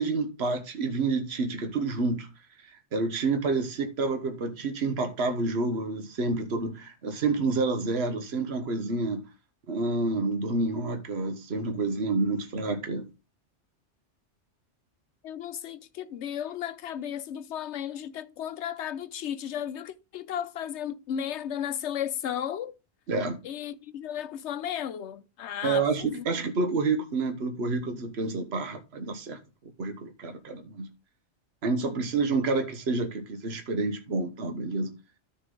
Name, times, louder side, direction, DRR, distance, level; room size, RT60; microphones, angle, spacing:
voice 1, 0.0-2.3 2.6-9.2 9.7-13.1 23.1-23.4 25.6-29.4 29.8-30.9 31.6-34.9, right 3 dB, 65° right, 1.4 m, -29 dB
voice 2, 15.2-22.7 23.4-26.2, left 9 dB, 75° left, 1.0 m, -34 dB
13.0 x 4.5 x 3.7 m
omnidirectional pair, 1.2 m